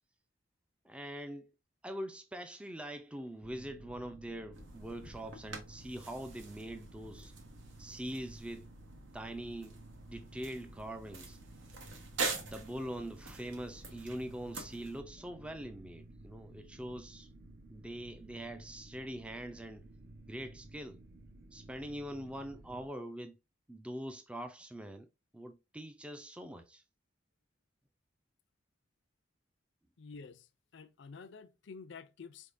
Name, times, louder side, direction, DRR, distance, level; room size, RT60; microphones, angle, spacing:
voice 1, 0.8-1.5 1.8-7.3 7.8-8.7 9.1-11.4 12.4-17.3 17.7-19.9 20.3-21.0 21.5-23.4 23.7-25.1 25.3-26.8, right 1 dB, 5° right, 0.3 m, -43 dB
sound 1, 3.4-22.9, right 2 dB, 55° right, 0.6 m, -54 dB
sound 2, 4.5-15.0, right 4 dB, 85° right, 1.1 m, -45 dB
voice 2, 30.0-30.5 30.7-32.5, left 5 dB, 65° left, 0.4 m, -50 dB
4.2 x 3.5 x 2.5 m
head